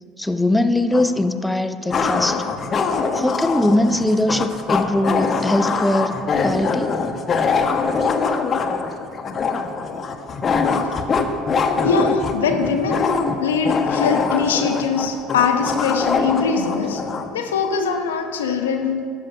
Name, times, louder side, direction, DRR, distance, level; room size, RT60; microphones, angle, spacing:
voice 1, 0.2-2.5 3.1-7.0, left 1 dB, 5° left, 9 dB, 0.5 m, -21 dB
sound 1, 0.9-1.0 1.9-17.3, left 5 dB, 40° left, 0.8 m, -23 dB
voice 2, 11.8-17.0 17.3-19.1, left 5 dB, 85° left, 5 dB, 0.7 m, -22 dB
13.0 x 4.7 x 5.4 m, 2.3 s
hypercardioid pair, 65°, 0 cm